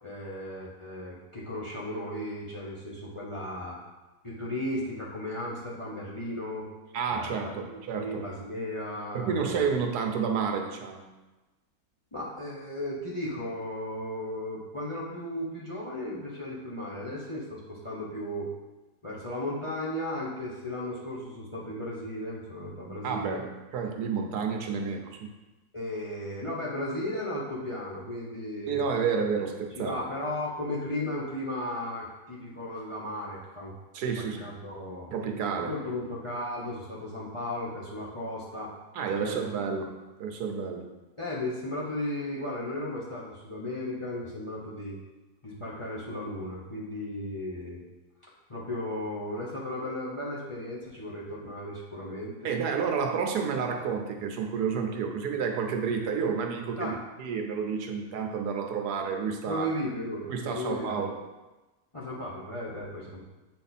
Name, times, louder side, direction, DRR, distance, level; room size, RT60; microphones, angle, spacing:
voice 1, 0.0-3.8 4.2-6.7 7.1-9.6 12.1-18.5 19.0-23.4 25.7-28.8 29.8-33.7 34.4-35.1 35.5-38.7 39.2-39.4 41.2-45.0 45.4-47.8 48.2-52.5 56.8-57.0 59.4-61.1 61.9-63.2, left 1 dB, 25° left, -5 dB, 0.9 m, -35 dB
voice 2, 6.9-8.3 9.1-11.1 23.0-25.2 28.7-30.0 33.9-34.6 35.1-35.7 38.9-39.9 40.2-40.9 52.4-59.7 60.3-61.1, right 6 dB, 75° right, 3 dB, 1.3 m, -30 dB
7.4 x 4.2 x 4.1 m, 1.1 s
omnidirectional pair, 1.7 m